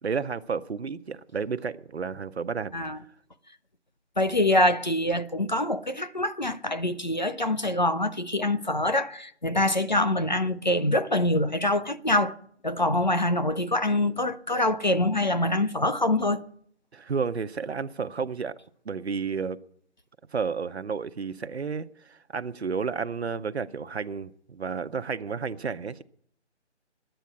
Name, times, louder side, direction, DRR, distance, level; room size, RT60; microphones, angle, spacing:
voice 1, 0.0-2.7 16.9-18.5 18.9-19.6 20.3-26.0, right 5 dB, 65° right, 0.7 m, -31 dB
voice 2, 4.2-12.3 12.6-16.4, left 1 dB, 40° left, 0.5 m, -25 dB
10.5 x 9.0 x 9.5 m
figure-of-eight pair, 170°, 35 cm